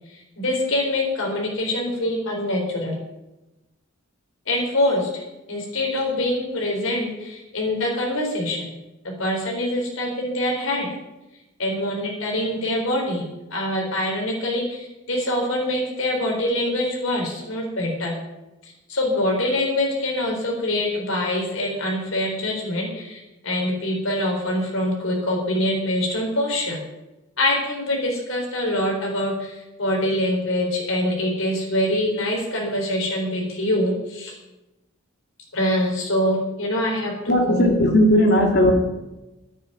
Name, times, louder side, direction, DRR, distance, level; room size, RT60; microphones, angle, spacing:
voice 1, 0.1-2.9 4.5-5.2 5.5-8.7 9.2-10.9 11.6-13.2 13.5-18.1 18.9-26.8 27.4-34.3 35.5-37.7, left 1 dB, 80° left, 0 dB, 4.1 m, -24 dB
voice 2, 37.3-38.7, equal, 55° left, 3 dB, 2.5 m, -17 dB
10.5 x 9.2 x 8.9 m, 1.0 s
head